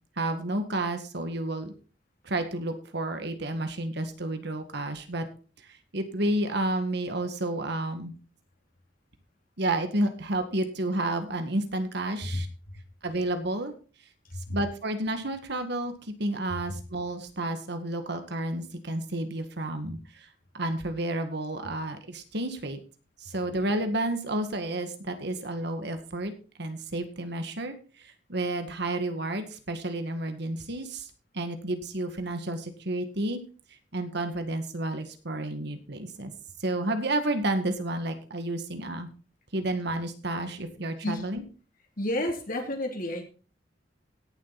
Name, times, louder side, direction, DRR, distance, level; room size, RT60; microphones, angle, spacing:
voice 1, 0.2-1.7 2.2-5.2 5.9-8.1 9.6-12.5 13.0-13.7 14.5-20.3 20.5-22.8 23.2-26.3 26.6-33.4 33.9-36.3 36.6-39.1 39.5-41.4, right 1 dB, 65° right, 7 dB, 2.0 m, -31 dB
voice 2, 42.0-43.2, left 1 dB, 50° left, 3 dB, 3.2 m, -30 dB
17.5 x 7.7 x 4.2 m, 0.36 s
head